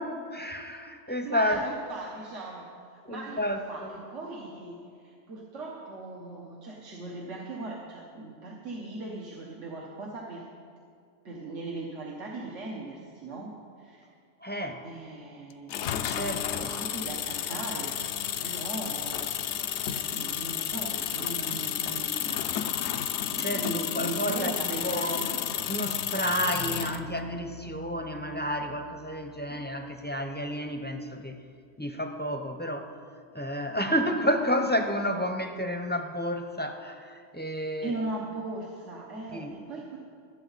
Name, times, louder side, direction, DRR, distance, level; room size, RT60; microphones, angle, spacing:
voice 1, 0.0-1.6 3.1-3.9 14.4-14.8 16.1-16.7 23.4-24.5 24.8-25.2 25.7-31.4 31.8-33.0 33.3-37.9 39.3-39.5, equal, 10° left, 5 dB, 0.6 m, -31 dB
voice 2, 1.1-10.4 11.2-14.1 14.8-15.8 16.1-18.0 18.4-19.3 19.6-22.4 23.3-25.4 29.5-29.6 37.8-40.0, right 2 dB, 80° right, -2 dB, 1.6 m, -39 dB
sound 1, 15.7-27.0, left 9 dB, 70° left, 0.9 m, -31 dB
sound 2, 26.5-30.7, left 2 dB, 45° left, 0.7 m, -43 dB
24.0 x 8.1 x 4.1 m, 2.4 s
omnidirectional pair, 1.2 m